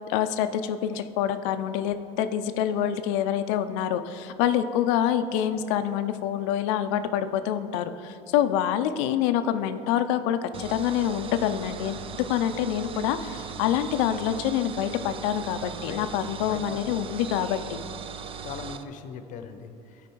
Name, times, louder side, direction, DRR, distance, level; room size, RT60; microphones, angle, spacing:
voice 1, 0.1-17.8, left 10 dB, 85° left, 11 dB, 0.5 m, -26 dB
sound 1, 10.5-18.8, right 7 dB, 35° right, 0.5 m, -39 dB
voice 2, 16.5-16.9 18.4-20.1, left 6 dB, 55° left, 9 dB, 0.8 m, -39 dB
13.0 x 5.0 x 4.6 m, 2.8 s
supercardioid pair, 110°, 15 cm